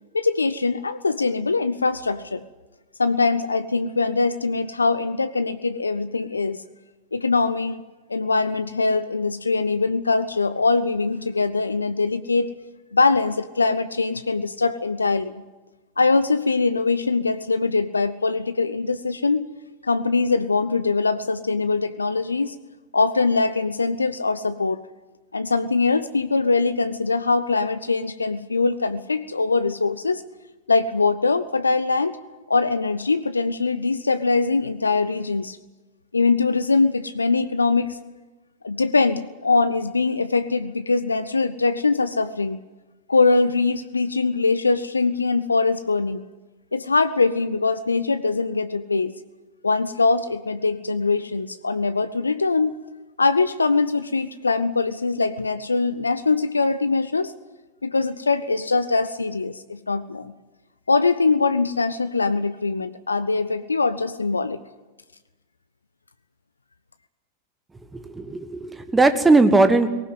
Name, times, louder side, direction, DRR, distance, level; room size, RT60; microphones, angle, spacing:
voice 1, 0.1-2.4 3.0-6.6 7.1-7.8 8.1-12.5 12.9-15.3 16.0-19.5 19.8-22.6 22.9-24.8 25.3-30.2 30.7-32.2 32.5-35.6 36.1-38.0 38.6-42.6 43.1-46.2 46.7-49.1 49.6-52.8 53.2-57.3 57.8-60.3 60.9-64.6, left 3 dB, 80° left, 13 dB, 0.6 m, -22 dB
voice 2, 67.9-69.9, right 3 dB, 10° right, 10 dB, 1.6 m, -18 dB
19.0 x 18.0 x 9.5 m, 1.2 s
figure-of-eight pair, 90°, 0 cm